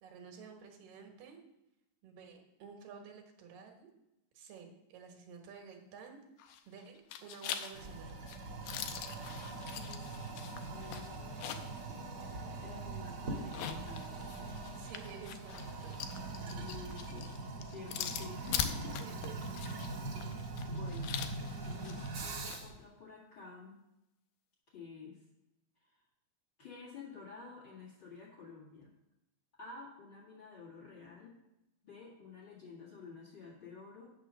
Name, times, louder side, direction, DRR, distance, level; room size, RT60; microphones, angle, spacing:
voice 1, 0.0-1.4 2.0-3.9 4.3-6.2 6.7-8.2 14.7-16.0 19.0-19.4, right 6 dB, 85° right, 3 dB, 3.1 m, -52 dB
sound 1, 6.4-6.8 7.1-11.8 12.2-12.3 13.4-22.6, left 9 dB, 85° left, 2.4 m, -42 dB
Toilet flush, 7.7-22.8, right 3 dB, 45° right, 1.4 m, -42 dB
voice 2, 9.7-10.2 10.7-14.1 16.6-17.3 17.7-19.0 19.5-20.2 20.7-21.2 21.6-23.8 24.7-25.2 25.8-26.0 26.6-28.9 29.6-31.4 31.8-34.1, left 4 dB, 35° left, -3 dB, 2.2 m, -51 dB
9.1 x 6.3 x 6.6 m, 0.90 s
omnidirectional pair, 3.8 m